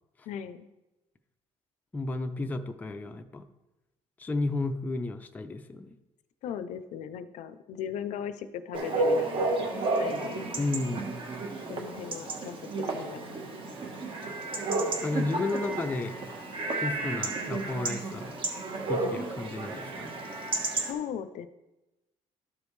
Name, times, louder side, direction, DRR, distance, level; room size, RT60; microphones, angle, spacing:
voice 1, 0.3-0.7 6.4-10.5 11.7-13.4 20.8-21.5, left 8 dB, 65° left, 12 dB, 0.5 m, -38 dB
voice 2, 1.9-3.5 4.2-5.9 10.6-11.1 15.0-16.2 16.8-18.4 18.9-20.1, left 2 dB, 10° left, 6 dB, 0.4 m, -32 dB
Chatter / Bark / Livestock farm animals working animals, 8.7-20.9, right 2 dB, 40° right, 1.2 m, -32 dB
12.5 x 5.1 x 3.2 m, 1.0 s
cardioid pair, 155°, 13 cm